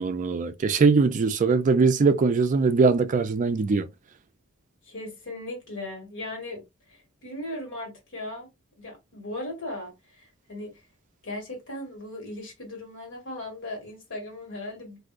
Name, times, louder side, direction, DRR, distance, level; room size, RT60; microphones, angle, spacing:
voice 1, 0.0-3.9, right 4 dB, 35° right, 0.4 m, -21 dB
voice 2, 4.8-6.6 6.9-8.5 8.8-10.7 11.2-15.0, left 1 dB, 60° left, 1.6 m, -37 dB
3.6 x 2.6 x 2.4 m
head